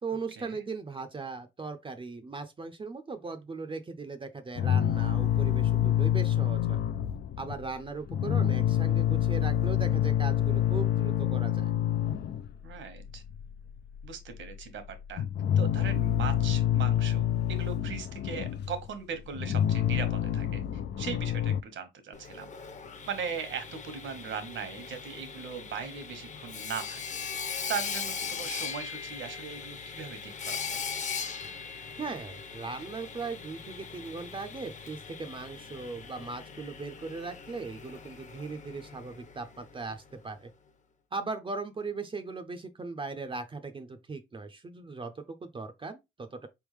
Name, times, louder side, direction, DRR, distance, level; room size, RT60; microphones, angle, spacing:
voice 1, 0.0-6.8 7.4-11.7 32.0-40.5 41.1-46.5, right 4 dB, 25° right, 0.6 m, -38 dB
sound 1, 4.6-7.8 8.1-12.7 13.0-14.1 14.3-14.5 14.9-18.9 19.3-21.6, left 11 dB, 60° left, 0.5 m, -27 dB
voice 2, 12.6-13.2 14.0-15.2 15.6-20.6 21.0-22.5 23.1-27.2 27.7-30.8, right 6 dB, 70° right, 1.4 m, -39 dB
Sawing, 22.1-39.9, left 6 dB, 40° left, 0.9 m, -40 dB
4.4 x 3.6 x 3.2 m
cardioid pair, 90°, 20 cm